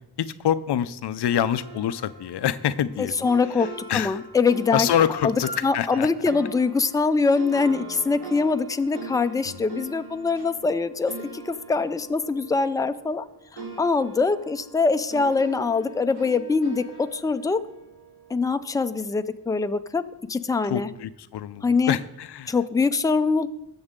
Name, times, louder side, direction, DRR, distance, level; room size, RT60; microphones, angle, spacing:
voice 1, 0.2-3.3 3.6-4.2 4.7-6.1 9.5-9.6 20.6-22.5, left 10 dB, 90° left, 13 dB, 0.6 m, -26 dB
sound 1, 1.3-13.3 13.6-18.8, right 3 dB, 75° right, 3.1 m, -41 dB
voice 2, 3.0-3.7 3.9-4.9 5.2-5.3 5.6-13.3 13.5-17.6 18.3-20.0 20.3-20.9 21.6-22.0 22.5-23.5, left 4 dB, 10° left, 10 dB, 0.4 m, -23 dB
18.5 x 7.1 x 3.7 m, 0.84 s
wide cardioid pair, 110°, 39 cm